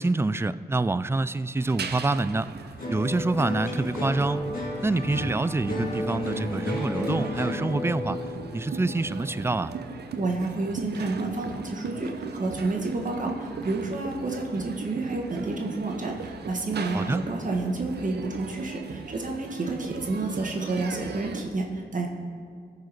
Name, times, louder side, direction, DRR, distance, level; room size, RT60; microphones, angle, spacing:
voice 1, 0.0-2.5 2.9-4.4 4.8-8.2 8.5-9.7 16.9-17.2, right 2 dB, 15° right, 16 dB, 0.3 m, -26 dB
sound 1, 1.6-21.5, right 5 dB, 75° right, 0.6 m, -38 dB
sound 2, 2.8-11.2 11.6-12.2, left 1 dB, 55° left, 2.5 m, -33 dB
voice 2, 10.2-22.1, right 2 dB, 50° right, 1 dB, 1.5 m, -30 dB
13.5 x 4.8 x 4.7 m, 2.1 s
cardioid pair, 40°, 17 cm